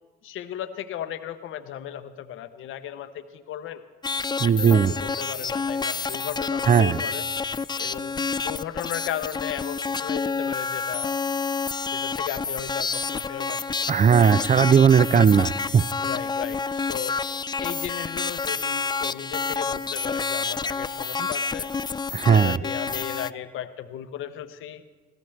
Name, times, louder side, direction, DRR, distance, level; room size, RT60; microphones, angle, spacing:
voice 1, 0.2-3.8 4.4-7.2 7.8-8.1 8.4-11.1 11.9-14.4 16.0-17.2 17.6-21.7 22.3-24.8, left 11 dB, 80° left, 10 dB, 0.7 m, -35 dB
sound 1, 4.0-23.3, left 4 dB, 20° left, 0.4 m, -29 dB
voice 2, 4.4-4.9 6.7-7.0 13.9-15.9 21.2-21.3 22.1-22.6, right 7 dB, 40° right, 18 dB, 0.5 m, -18 dB
20.5 x 15.5 x 3.3 m, 1.4 s
supercardioid pair, 50°, 21 cm